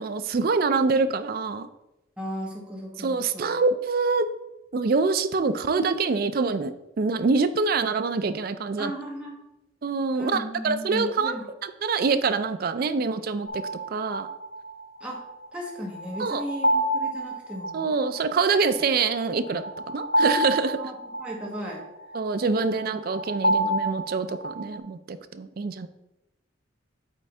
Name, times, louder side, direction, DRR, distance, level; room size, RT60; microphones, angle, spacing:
voice 1, 0.0-1.7 3.0-4.3 4.7-8.9 9.8-13.6 13.9-14.3 16.2-16.4 17.7-20.9 22.1-25.9, right 4 dB, 50° right, 11 dB, 0.4 m, -25 dB
voice 2, 2.2-3.5 8.8-9.4 10.1-11.4 15.0-15.2 15.5-17.9 20.8-21.8 22.5-22.8, equal, 5° right, -3 dB, 1.3 m, -36 dB
sound 1, 13.5-24.8, right 1 dB, 50° left, 0.5 m, -29 dB
8.3 x 3.6 x 3.4 m, 0.93 s
head